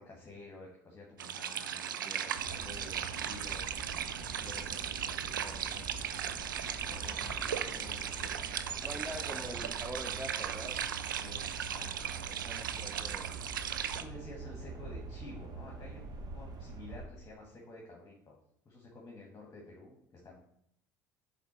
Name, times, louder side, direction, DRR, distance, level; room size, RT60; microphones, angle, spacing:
voice 1, 0.0-6.4 6.7-9.7 11.2-12.7 14.0-18.4 18.7-20.4, left 2 dB, 25° left, -2 dB, 1.8 m, -51 dB
sound 1, 1.2-14.0, right 9 dB, 80° right, 0.4 m, -37 dB
sound 2, 2.3-17.1, right 3 dB, 40° right, 1.1 m, -45 dB
voice 2, 8.8-10.8 12.4-13.4, right 1 dB, 10° right, 7 dB, 0.6 m, -44 dB
7.3 x 3.7 x 4.4 m, 0.70 s
figure-of-eight pair, 65°, 11 cm